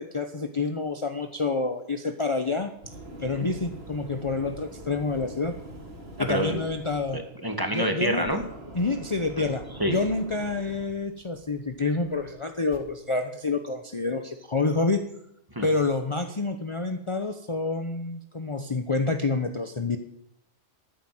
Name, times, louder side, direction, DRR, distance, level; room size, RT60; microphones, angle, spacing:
voice 1, 0.0-2.7 3.2-5.5 6.2-7.2 7.7-8.3 8.7-15.0 15.6-20.0, left 3 dB, 30° left, 6 dB, 0.9 m, -28 dB
sound 1, 2.4-12.8, right 1 dB, 60° right, 2.7 m, -44 dB
voice 2, 6.2-6.6 7.1-8.4 9.8-10.0 15.5-15.7, right 1 dB, 20° right, 4 dB, 1.9 m, -27 dB
13.5 x 9.6 x 7.8 m, 0.74 s
omnidirectional pair, 1.2 m